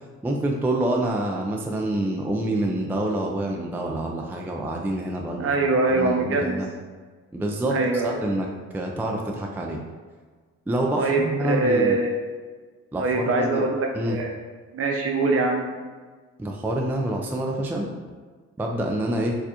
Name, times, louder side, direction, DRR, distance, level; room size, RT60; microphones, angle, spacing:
voice 1, 0.2-5.5 5.9-6.7 7.3-7.8 8.0-8.5 8.7-9.8 10.7-12.0 12.9-13.6 14.0-14.2 16.4-17.9 18.6-19.3, right 1 dB, 5° right, 0 dB, 0.3 m, -27 dB
voice 2, 5.4-6.6 7.7-8.2 11.0-12.2 13.0-14.3 14.7-15.6, right 3 dB, 50° right, 1 dB, 0.7 m, -23 dB
4.4 x 2.4 x 2.8 m, 1.5 s
cardioid pair, 90°, 30 cm